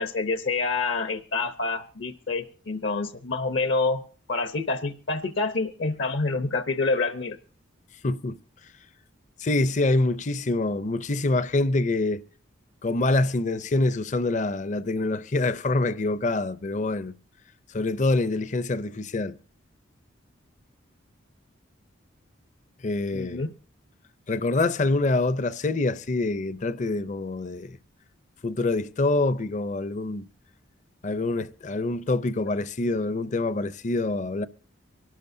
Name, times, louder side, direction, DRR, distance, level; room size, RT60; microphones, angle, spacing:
voice 1, 0.0-4.0 4.3-7.4 23.1-23.5, left 3 dB, 65° left, 0.8 m, -27 dB
voice 2, 8.0-8.4 9.4-12.2 12.8-17.1 17.7-19.4 22.8-23.4 24.3-27.8 28.4-30.3 31.0-34.5, left 2 dB, 35° left, 0.5 m, -25 dB
24.5 x 12.5 x 2.7 m
head